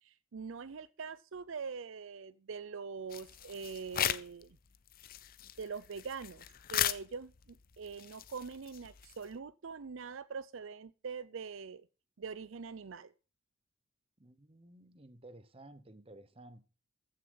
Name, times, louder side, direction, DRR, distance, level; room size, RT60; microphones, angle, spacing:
voice 1, 0.0-4.6 5.6-11.9 12.2-13.1, right 5 dB, 65° right, 0.5 m, -43 dB
sound 1, 3.1-4.4 4.7-9.4, left 11 dB, 45° left, 0.6 m, -38 dB
voice 2, 14.2-16.6, right 1 dB, 25° right, 1.0 m, -54 dB
14.5 x 6.6 x 5.5 m
head